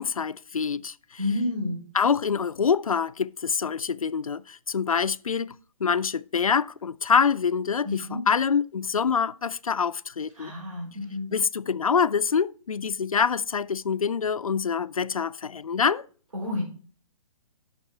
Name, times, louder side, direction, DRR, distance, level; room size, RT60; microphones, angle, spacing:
voice 1, 0.0-1.2 1.9-5.6 5.8-10.5 11.3-16.1, left 6 dB, 80° left, 0.5 m, -25 dB
voice 2, 1.2-1.9 7.8-8.2 10.4-11.3 16.3-16.6, left 2 dB, 70° right, 4.9 m, -30 dB
8.9 x 6.4 x 4.5 m
figure-of-eight pair, 130°, 18 cm